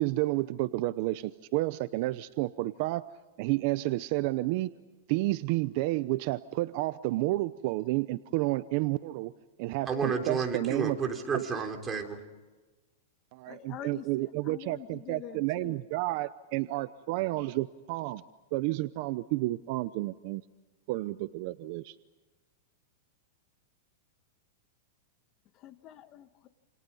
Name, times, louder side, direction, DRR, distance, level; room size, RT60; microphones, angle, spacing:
voice 1, 0.0-3.0 3.4-4.7 5.1-9.3 9.6-11.0 11.3-11.4 13.3-18.2 18.5-20.4 20.9-21.9, right 19 dB, 45° right, 14 dB, 0.8 m, -30 dB
voice 2, 9.9-12.2, right 5 dB, 15° right, 3 dB, 3.5 m, -31 dB
voice 3, 13.5-15.8 25.6-26.5, left 11 dB, 30° left, 10 dB, 1.3 m, -46 dB
29.5 x 28.5 x 5.6 m, 1.2 s
supercardioid pair, 155°, 0 cm